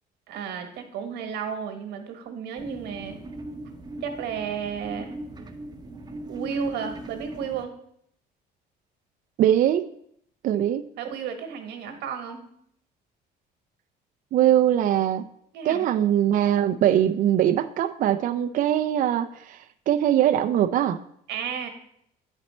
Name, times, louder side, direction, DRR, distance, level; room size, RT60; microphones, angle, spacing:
voice 1, 0.3-3.2 4.0-5.1 6.3-7.7 11.0-12.4 15.5-15.9 21.3-21.7, right 7 dB, 80° right, 6 dB, 1.2 m, -33 dB
sound 1, 2.6-7.6, right 1 dB, 25° right, 0.7 m, -39 dB
voice 2, 9.4-9.8 10.4-10.8 14.3-15.2 15.6-21.0, right 11 dB, 55° right, 10 dB, 0.4 m, -22 dB
8.9 x 4.2 x 4.3 m, 0.70 s
cardioid pair, 110°, 17 cm